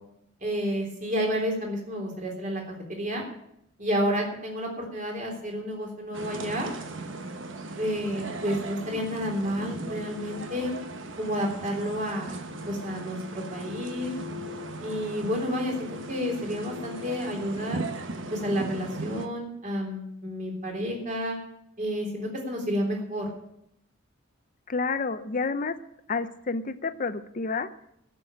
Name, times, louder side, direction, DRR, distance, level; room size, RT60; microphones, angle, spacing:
voice 1, 0.4-2.6 2.9-3.2 3.8-6.7 7.8-10.7 11.2-14.1 14.8-17.8 18.3-21.4 21.8-23.3, equal, 40° right, 0 dB, 3.5 m, -30 dB
sound 1, 6.1-19.3, right 2 dB, 65° right, 1.1 m, -37 dB
voice 2, 24.7-25.8 26.1-27.7, left 4 dB, 40° left, 10 dB, 0.7 m, -29 dB
13.5 x 6.9 x 9.0 m, 0.77 s
head